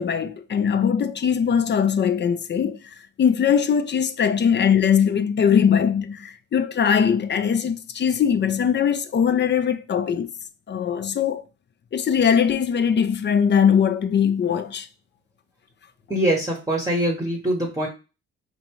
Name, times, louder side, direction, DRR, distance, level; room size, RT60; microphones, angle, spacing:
voice 1, 0.0-10.3 10.7-11.4 11.9-14.9, left 7 dB, 35° left, 0.5 m, -21 dB
voice 2, 16.1-17.9, right 1 dB, 10° right, 0.9 m, -23 dB
4.4 x 2.7 x 3.0 m
cardioid pair, 90°, 30 cm